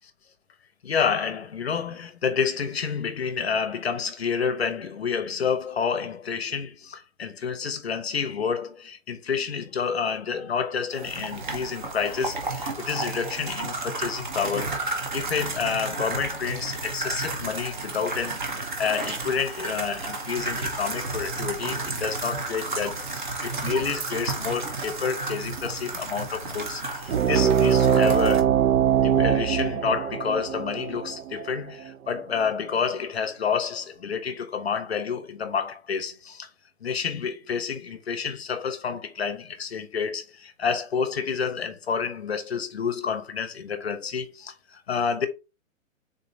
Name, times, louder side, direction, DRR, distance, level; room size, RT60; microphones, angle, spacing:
voice 1, 0.8-14.8 15.1-28.5 29.0-36.5 36.8-45.3, left 6 dB, 50° left, 0.6 m, -29 dB
sound 1, 10.9-28.4, right 3 dB, 35° right, 0.8 m, -32 dB
sound 2, 27.1-32.2, right 9 dB, 85° right, 0.7 m, -22 dB
3.8 x 3.1 x 3.8 m
hypercardioid pair, 175°, 40 cm